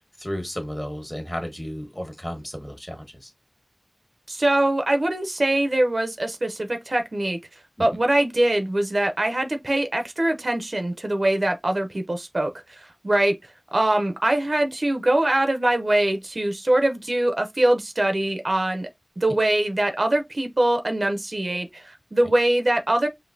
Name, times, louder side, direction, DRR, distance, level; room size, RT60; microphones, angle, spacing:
voice 1, 0.2-3.3 7.8-8.0, equal, 20° left, 1.4 m, -33 dB
voice 2, 4.3-7.4 7.8-13.3 13.7-18.9 19.2-23.1, right 1 dB, 70° right, 0.6 m, -23 dB
5.0 x 2.7 x 2.6 m
wide cardioid pair, 45°, 0 cm